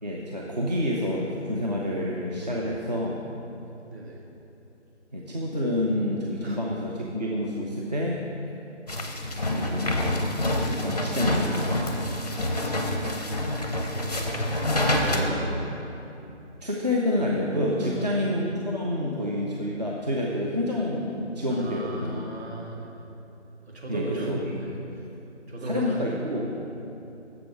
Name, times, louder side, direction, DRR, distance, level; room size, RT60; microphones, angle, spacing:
voice 1, 0.0-3.2 5.1-8.2 9.5-10.3 10.5-11.7 16.6-22.3 23.9-24.6 25.6-26.5, left 1 dB, 35° right, -3 dB, 0.5 m, -28 dB
voice 2, 3.9-4.2 6.4-6.6 12.0-12.7 13.8-14.5 14.9-15.8 17.8-18.2 21.5-23.0 23.7-25.0 25.5-26.8, right 1 dB, 60° right, -1 dB, 1.5 m, -36 dB
sound 1, 8.9-15.2, left 1 dB, 35° left, 0.5 m, -27 dB
7.0 x 5.0 x 5.8 m, 2.9 s
figure-of-eight pair, 160°, 36 cm